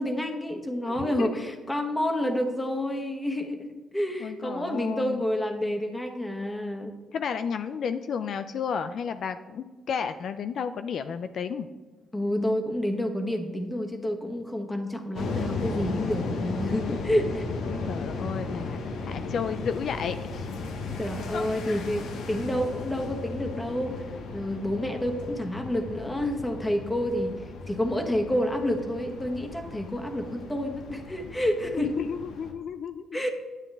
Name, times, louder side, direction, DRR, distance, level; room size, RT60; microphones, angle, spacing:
voice 1, 0.0-6.9 12.1-17.5 20.9-24.0 24.3-31.9 33.1-33.3, left 1 dB, 10° left, 4 dB, 1.3 m, -29 dB
voice 2, 0.9-1.4 4.2-5.2 7.1-11.7 17.7-20.5 21.3-21.8 31.8-33.2, left 6 dB, 60° left, 10 dB, 0.4 m, -33 dB
sound 1, 15.1-32.5, left 3 dB, 80° left, 1.1 m, -35 dB
9.8 x 8.9 x 3.4 m, 1.3 s
cardioid pair, 90°, 0 cm